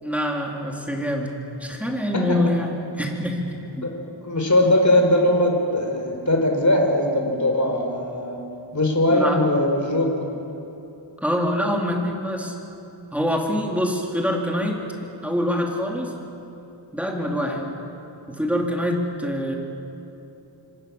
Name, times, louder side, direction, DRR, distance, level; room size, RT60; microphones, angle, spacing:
voice 1, 0.0-1.3 1.6-3.5 3.8-3.9 9.1-9.4 11.2-12.5 13.1-14.8 15.2-16.1 16.9-17.6 18.3-19.5, equal, 5° right, 0 dB, 4.0 m, -25 dB
voice 2, 2.1-2.5 3.8-4.0 4.2-8.5 8.7-10.3 17.4-17.6, left 1 dB, 40° left, 2 dB, 4.7 m, -20 dB
25.5 x 25.0 x 7.3 m, 2.9 s
wide cardioid pair, 85°, 45 cm